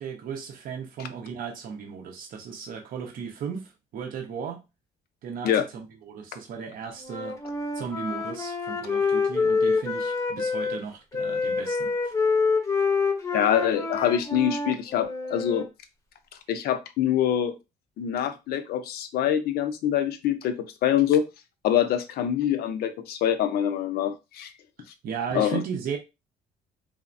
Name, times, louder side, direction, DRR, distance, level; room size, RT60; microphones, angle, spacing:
voice 1, 0.0-4.6 5.2-7.4 7.7-12.1 25.0-26.0, right 6 dB, 55° right, 0.6 m, -36 dB
Wind instrument woodwind instrument, 7.0-10.8 11.1-15.6, left 4 dB, 20° left, 0.6 m, -27 dB
voice 2, 13.3-15.7 16.5-17.6 18.0-21.2 21.6-24.5 25.3-25.6, left 10 dB, 65° left, 0.5 m, -25 dB
3.2 x 2.0 x 2.4 m
cardioid pair, 110°, 17 cm